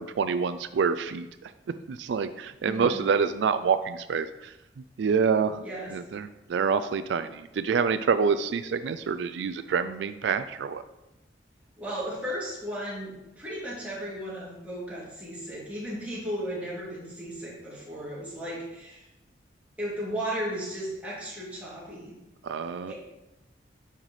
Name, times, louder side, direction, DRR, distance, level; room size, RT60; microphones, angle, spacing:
voice 1, 0.0-1.5 1.9-4.5 5.0-5.6 5.9-10.8 22.4-22.9, right 6 dB, 80° right, 11 dB, 0.3 m, -27 dB
voice 2, 2.6-3.2 5.6-5.9 11.8-19.0 19.8-22.1 22.9-23.0, equal, 10° right, -8 dB, 2.6 m, -35 dB
8.8 x 5.7 x 3.2 m, 0.94 s
head